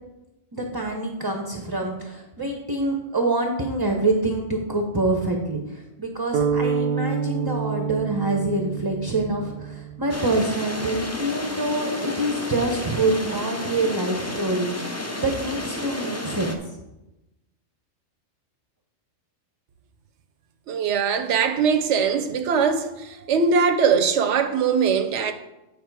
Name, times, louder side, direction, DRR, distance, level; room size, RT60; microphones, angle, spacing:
voice 1, 0.5-16.6, right 2 dB, 25° right, 0.7 m, -26 dB
sound 1, 6.3-10.3, right 6 dB, 65° right, 0.7 m, -27 dB
sound 2, 10.1-16.5, left 1 dB, 20° left, 0.6 m, -31 dB
voice 2, 20.7-25.3, right 6 dB, 90° right, 1.0 m, -21 dB
8.7 x 5.1 x 4.7 m
omnidirectional pair, 1.2 m